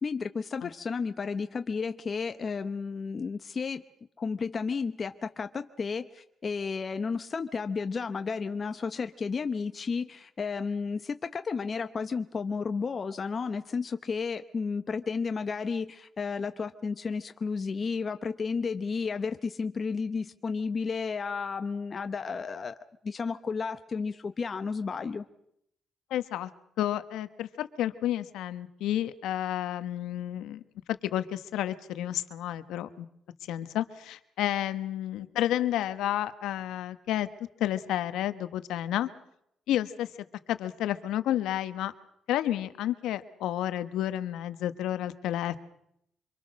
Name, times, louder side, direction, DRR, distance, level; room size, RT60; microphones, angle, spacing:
voice 1, 0.0-3.8 4.2-22.7 23.0-25.2, left 5 dB, 40° left, 8 dB, 0.9 m, -32 dB
voice 2, 26.1-26.5 26.8-30.6 30.9-33.1 33.4-37.3 37.6-39.1 39.7-40.1 40.5-41.9 42.3-45.6, left 12 dB, 85° left, 12 dB, 1.2 m, -31 dB
25.5 x 23.0 x 6.4 m, 0.74 s
cardioid pair, 90°, 0 cm